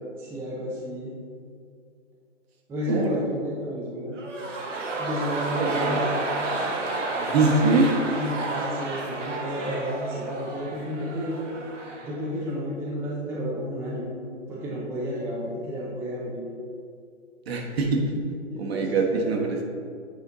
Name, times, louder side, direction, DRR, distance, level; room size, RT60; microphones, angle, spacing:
voice 1, 0.2-1.2 2.7-4.1 5.0-6.3 8.1-11.4 12.0-14.1 14.5-16.4 18.5-19.5, equal, 5° right, -6 dB, 0.6 m, -31 dB
sound 1, 4.1-12.2 12.5-12.6, right 2 dB, 80° right, 1.2 m, -31 dB
voice 2, 5.6-6.0 7.2-7.9 17.5-18.0 18.6-19.6, right 3 dB, 55° right, 1 dB, 1.3 m, -23 dB
8.3 x 4.2 x 3.9 m, 2.3 s
hypercardioid pair, 135°, 36 cm